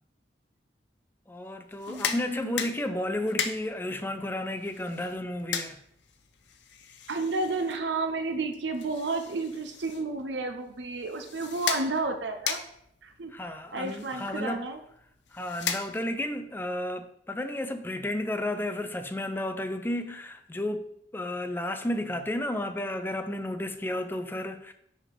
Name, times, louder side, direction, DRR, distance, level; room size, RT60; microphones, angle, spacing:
voice 1, 1.3-5.8 13.3-14.6 15.3-24.7, left 1 dB, 10° left, 0.4 m, -32 dB
sound 1, 1.7-16.3, left 7 dB, 80° left, 0.7 m, -38 dB
voice 2, 1.9-2.7 7.1-12.6 13.0-13.3 13.7-14.8, right 3 dB, 80° right, 0.7 m, -31 dB
5.5 x 5.0 x 5.0 m
head